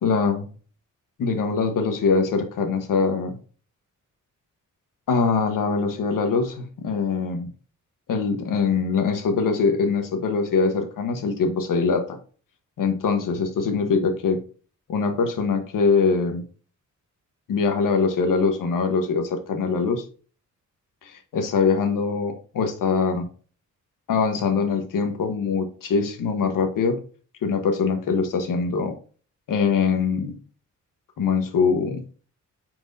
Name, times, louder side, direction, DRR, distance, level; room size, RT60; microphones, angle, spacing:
voice 1, 0.0-0.5 1.2-3.4 5.1-7.5 8.1-12.2 12.8-14.4 14.9-16.4 17.5-20.0 21.0-23.3 24.1-27.0 27.4-28.9 29.5-30.4 31.2-32.0, left 5 dB, 85° left, 6 dB, 1.2 m, -23 dB
9.2 x 4.5 x 2.6 m, 0.41 s
wide cardioid pair, 130°, 32 cm